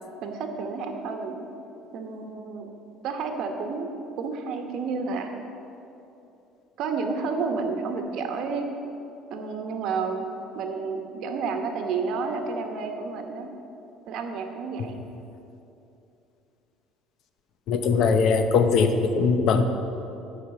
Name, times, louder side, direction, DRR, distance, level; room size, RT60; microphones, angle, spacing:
voice 1, 0.2-1.4 1.9-2.7 3.0-3.9 4.2-5.3 6.8-8.6 9.3-10.3 10.5-13.5 14.1-15.0, right 4 dB, 50° right, 5 dB, 1.0 m, -30 dB
voice 2, 17.7-19.6, left 5 dB, 50° left, 8 dB, 0.7 m, -21 dB
10.5 x 5.0 x 7.6 m, 2.9 s
cardioid pair, 170°, 0 cm